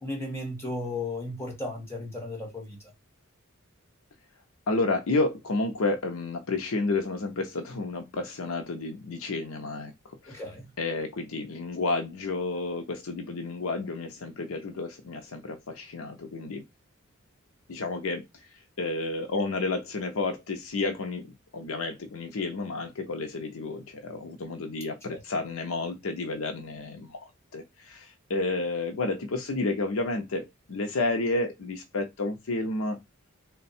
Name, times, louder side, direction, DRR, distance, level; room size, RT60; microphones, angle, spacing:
voice 1, 0.0-2.8 10.3-10.6 25.1-25.2, left 2 dB, 15° left, 1.6 m, -35 dB
voice 2, 4.7-10.4 10.8-16.6 17.7-18.2 18.8-33.0, left 3 dB, 80° left, 0.6 m, -31 dB
3.5 x 2.2 x 4.1 m
head